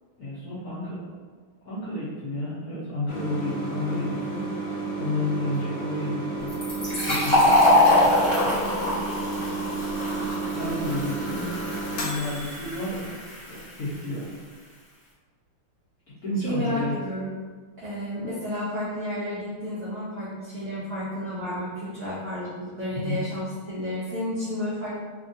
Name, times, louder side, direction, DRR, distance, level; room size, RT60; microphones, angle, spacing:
voice 1, 0.2-1.0 1.6-4.5 4.9-6.5 7.1-8.5 10.1-11.5 11.9-13.1 13.5-14.3 16.2-16.9 22.9-23.2, left 2 dB, 60° left, -10 dB, 1.0 m, -31 dB
sound 1, 3.1-12.8, right 3 dB, 85° left, 1.5 m, -32 dB
Fill (with liquid), 6.5-13.8, left 1 dB, 45° left, 0.4 m, -24 dB
voice 2, 16.4-17.3 17.8-24.9, equal, 80° right, -9 dB, 0.7 m, -31 dB
3.4 x 2.2 x 2.6 m, 1.5 s
omnidirectional pair, 2.4 m